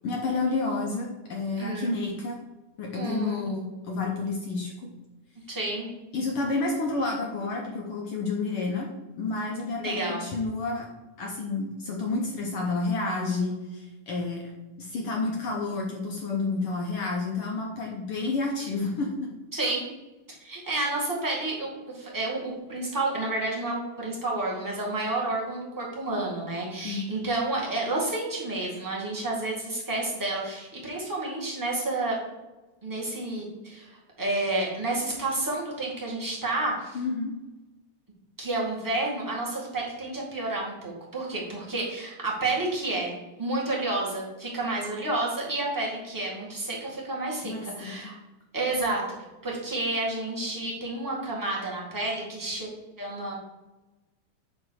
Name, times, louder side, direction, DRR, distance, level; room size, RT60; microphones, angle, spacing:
voice 1, 0.0-2.4 2.8-4.7 6.1-8.9 9.2-10.9 11.2-14.5 14.8-19.3 26.8-27.1 36.9-37.3 47.4-48.1, left 3 dB, 80° left, 0 dB, 1.2 m, -30 dB
voice 2, 1.6-1.9 2.9-3.6 5.5-5.9 9.8-10.2 19.5-19.8 20.4-32.2 32.8-37.0 38.4-48.1 48.5-49.0 49.4-52.7 53.0-53.3, right 2 dB, 10° right, -5 dB, 1.0 m, -30 dB
9.4 x 3.2 x 6.3 m, 1.1 s
omnidirectional pair, 3.7 m